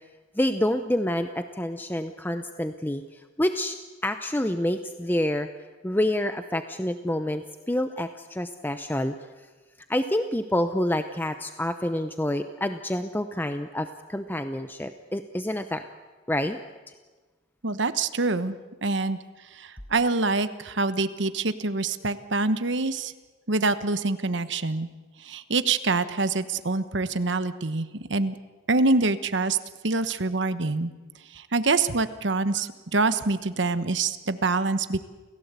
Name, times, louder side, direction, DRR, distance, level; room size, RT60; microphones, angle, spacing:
voice 1, 0.3-5.5 5.8-9.1 9.9-15.8 16.3-16.6, left 1 dB, 10° left, 8 dB, 0.7 m, -28 dB
voice 2, 17.6-18.5 18.8-19.2 19.5-23.1 23.5-24.9 25.2-28.4 28.7-29.6 29.8-30.9 31.3-35.0, right 3 dB, 65° right, 12 dB, 1.2 m, -25 dB
29.5 x 16.5 x 8.3 m, 1.3 s
head